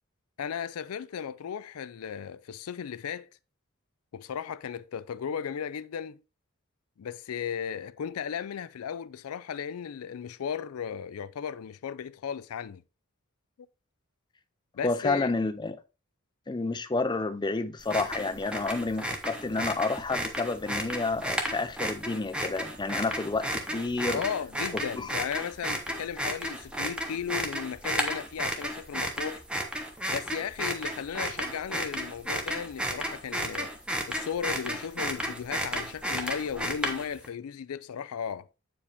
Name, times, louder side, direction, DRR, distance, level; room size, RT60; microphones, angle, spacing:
voice 1, 0.4-3.3 4.1-6.2 7.0-12.8 14.7-15.3 21.4-21.5 24.1-29.4 30.1-33.7 34.1-38.5, left 7 dB, 85° left, 0.4 m, -35 dB
voice 2, 14.8-15.8 16.5-24.2 24.7-25.1, left 3 dB, 20° left, 0.5 m, -30 dB
sound 1, 17.8-37.3, equal, 5° right, 1.1 m, -33 dB
8.2 x 4.9 x 3.5 m
head